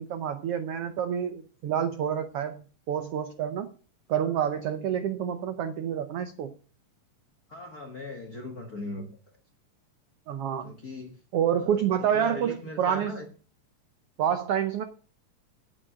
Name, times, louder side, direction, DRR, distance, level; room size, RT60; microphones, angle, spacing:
voice 1, 0.0-3.7 4.1-6.5 10.3-10.7 11.3-13.1 14.2-14.8, right 9 dB, 90° right, 9 dB, 1.3 m, -28 dB
voice 2, 7.5-9.1 10.6-11.2 11.6-11.7 12.1-13.2, left 2 dB, 55° left, 3 dB, 1.0 m, -39 dB
8.9 x 8.7 x 6.2 m, 0.39 s
omnidirectional pair, 3.7 m